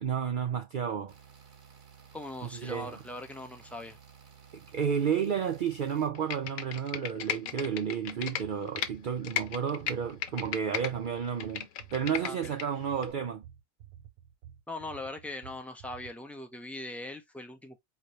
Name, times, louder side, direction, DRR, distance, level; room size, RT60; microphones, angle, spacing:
voice 1, 0.0-1.1 2.4-2.9 4.5-13.4, right 7 dB, 60° right, 0.5 m, -32 dB
sound 1, 1.1-6.1, right 7 dB, 40° right, 0.9 m, -55 dB
voice 2, 2.1-4.0 12.2-12.5 14.7-17.8, left 2 dB, ahead, 0.4 m, -41 dB
Computer keyboard, 6.1-8.9 9.2-10.9 11.2-12.6 13.0-13.1, left 9 dB, 75° left, 1.1 m, -35 dB
sound 2, 8.4-16.1, right 10 dB, 85° right, 1.1 m, -52 dB
4.4 x 2.7 x 3.1 m
omnidirectional pair, 1.4 m